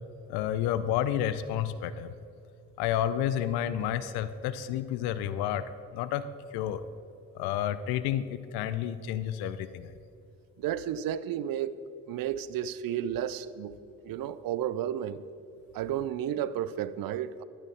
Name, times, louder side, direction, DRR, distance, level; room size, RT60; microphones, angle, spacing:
voice 1, 0.3-2.1 2.8-5.6 5.9-6.3 6.5-6.8 7.3-9.9, left 10 dB, 80° left, 0.6 m, -30 dB
voice 2, 10.6-13.8 14.0-15.2 15.7-17.4, right 10 dB, 65° right, 0.6 m, -32 dB
11.5 x 9.9 x 4.3 m
hypercardioid pair, 45°, 38 cm